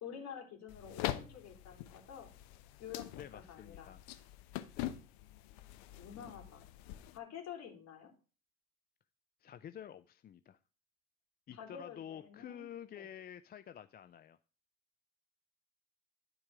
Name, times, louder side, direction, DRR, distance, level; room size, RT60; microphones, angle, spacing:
voice 1, 0.0-2.3 2.8-4.0 5.9-6.7 7.1-8.1 11.5-12.6 12.9-13.1, left 8 dB, 50° left, 3 dB, 3.2 m, -49 dB
sound 1, 0.7-7.2, left 13 dB, 65° left, 1.0 m, -44 dB
voice 2, 3.1-4.0 4.7-4.9 9.4-10.6 11.5-14.4, left 9 dB, 30° left, 12 dB, 0.5 m, -49 dB
11.5 x 4.7 x 4.7 m, 0.36 s
hypercardioid pair, 70°, 34 cm